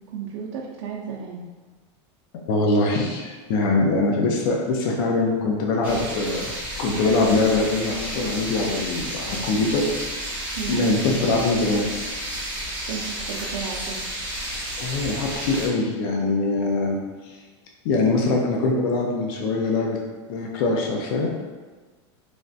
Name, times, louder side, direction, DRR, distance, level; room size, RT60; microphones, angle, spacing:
voice 1, 0.1-1.4 10.6-10.8 12.9-14.0, right 7 dB, 80° right, -3 dB, 0.4 m, -33 dB
voice 2, 2.5-6.5 6.8-9.9 10.7-11.9 14.8-17.0 17.2-17.3 17.8-20.0 20.3-21.3, left 3 dB, 50° left, 0 dB, 0.4 m, -23 dB
sound 1, 5.8-15.7, right 1 dB, 10° right, 0.6 m, -32 dB
3.2 x 2.4 x 2.5 m, 1.3 s
supercardioid pair, 175°, 15 cm